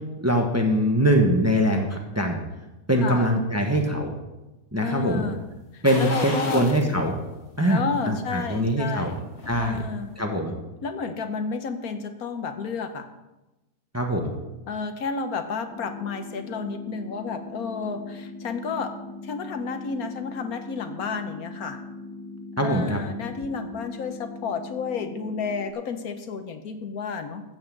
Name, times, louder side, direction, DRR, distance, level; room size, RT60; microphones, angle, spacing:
voice 1, 0.2-2.4 2.9-4.2 4.7-5.2 5.8-7.2 7.6-9.1 9.5-9.8 10.2-10.5 13.9-14.3 22.6-23.0, equal, 10° right, 2 dB, 1.1 m, -23 dB
voice 2, 3.0-3.3 4.8-5.5 5.7-6.6 7.7-9.2 9.6-10.2 10.8-13.1 14.7-19.0 19.2-21.8 22.6-27.4, left 5 dB, 70° left, 8 dB, 1.3 m, -31 dB
sound 1, 5.8-6.9 7.3-7.4 8.9-9.7 10.1-10.2, left 2 dB, 45° left, 2.1 m, -34 dB
sound 2, 15.7-25.7, left 2 dB, 10° left, 0.7 m, -40 dB
14.5 x 5.7 x 7.2 m, 1.0 s
omnidirectional pair, 1.7 m